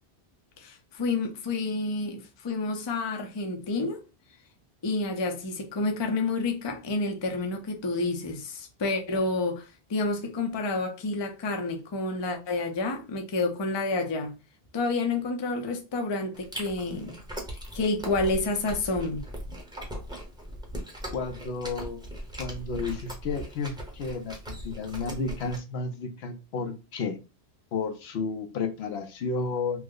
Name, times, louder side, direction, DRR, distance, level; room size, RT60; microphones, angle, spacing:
voice 1, 0.6-4.0 4.8-9.6 9.9-14.3 14.7-17.1 17.7-19.2, left 3 dB, 35° left, 0.5 m, -29 dB
Chewing mastication, 16.3-25.6, equal, 5° right, 0.7 m, -39 dB
voice 2, 21.1-22.1 22.4-27.2 27.7-29.8, left 4 dB, 75° left, 0.8 m, -32 dB
3.0 x 2.0 x 3.6 m
omnidirectional pair, 1.1 m